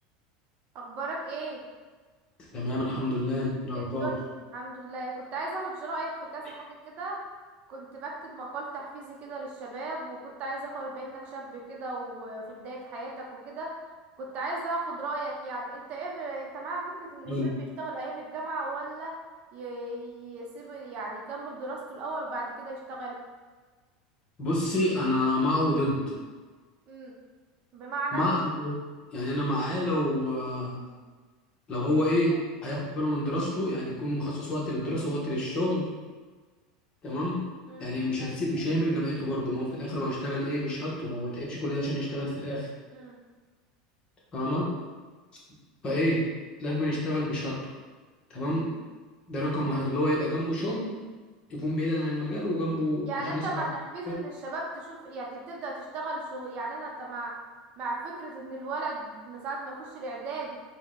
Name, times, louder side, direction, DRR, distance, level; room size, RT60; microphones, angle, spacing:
voice 1, 0.7-1.6 3.7-7.2 7.7-13.7 14.2-17.3 17.8-19.2 19.5-23.2 26.9-27.1 27.7-28.2 37.7-37.9 42.9-43.2 53.1-57.3 57.8-60.6, right 2 dB, 45° right, -2 dB, 0.8 m, -36 dB
voice 2, 2.5-4.1 17.3-17.5 24.4-26.2 28.1-28.8 29.1-30.8 31.7-35.9 37.0-37.4 37.8-42.7 44.3-44.7 45.8-46.2 46.6-47.7 48.3-48.7 49.3-50.9 51.5-53.6 54.1-54.2, left 1 dB, 30° left, -4 dB, 1.2 m, -28 dB
4.4 x 2.3 x 3.7 m, 1.4 s
supercardioid pair, 120°, 3 cm